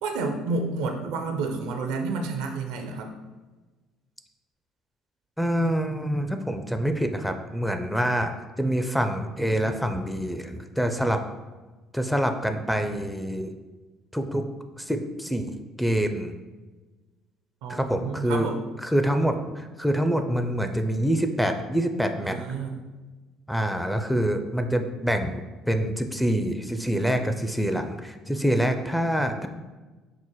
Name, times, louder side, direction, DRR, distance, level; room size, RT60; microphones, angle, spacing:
voice 1, 0.0-3.2 17.6-18.6 22.2-22.8, right 3 dB, 80° right, 4 dB, 0.5 m, -30 dB
voice 2, 5.4-8.3 8.6-11.2 11.9-13.5 14.1-14.5 14.8-16.3 17.7-18.5 18.8-22.4 23.5-29.5, equal, ahead, 6 dB, 0.4 m, -26 dB
5.5 x 2.1 x 3.0 m, 1.2 s
hypercardioid pair, 65°, 0 cm